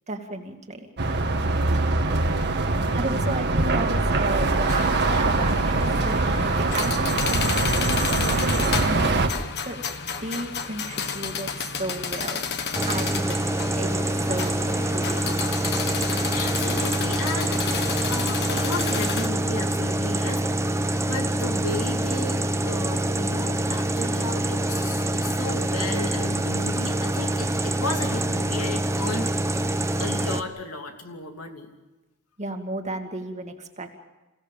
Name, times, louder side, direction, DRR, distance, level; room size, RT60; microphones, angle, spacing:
voice 1, 0.1-0.9 2.9-6.2 6.5-9.3 9.6-9.8 10.2-12.4 12.8-13.4 13.7-15.8 32.4-34.0, right 2 dB, 30° right, 4 dB, 2.2 m, -33 dB
sound 1, 1.0-9.3, right 2 dB, 50° right, 1.8 m, -23 dB
voice 2, 2.0-2.5 3.3-3.4 12.8-12.9 16.3-17.6 18.1-20.8 21.1-29.3 30.0-31.7, left 2 dB, 75° left, 3 dB, 2.9 m, -34 dB
sound 2, 4.7-19.3, left 6 dB, 50° left, 1.4 m, -31 dB
sound 3, 12.7-30.4, right 1 dB, 15° right, 0.9 m, -25 dB
28.0 x 16.5 x 7.4 m, 1.1 s
head